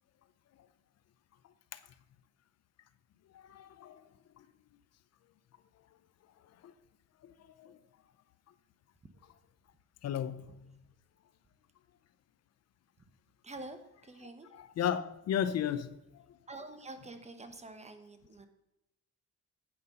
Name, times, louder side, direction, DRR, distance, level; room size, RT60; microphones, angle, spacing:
voice 1, 3.3-4.0 6.6-6.7 7.2-7.3 7.6-7.8 10.0-10.6 14.8-16.2, left 9 dB, 55° left, 0.5 m, -34 dB
voice 2, 10.5-10.8 13.4-14.5 16.5-18.5, right 2 dB, 20° right, 1.0 m, -48 dB
8.8 x 5.3 x 5.4 m
cardioid pair, 90°, 30 cm